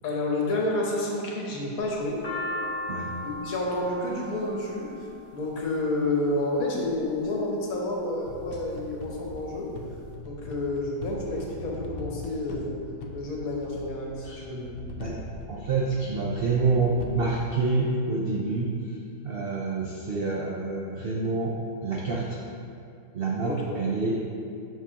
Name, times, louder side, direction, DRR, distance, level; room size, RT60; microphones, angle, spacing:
voice 1, 0.0-2.2 3.2-4.9 5.3-9.7 10.2-12.8 13.1-14.7 23.4-23.6, left 2 dB, 60° left, -2 dB, 1.3 m, -29 dB
sound 1, 1.8-6.0 6.9-7.3 7.9-8.6 8.9-9.0 9.2-10.0, left 1 dB, 40° left, 0.9 m, -36 dB
sound 2, 8.2-17.5, left 2 dB, 80° left, 1.3 m, -41 dB
voice 2, 15.5-18.8 19.2-21.6 21.8-22.4 23.1-24.2, right 3 dB, 80° right, -3 dB, 0.5 m, -27 dB
7.2 x 5.9 x 2.9 m, 2.6 s
omnidirectional pair, 1.8 m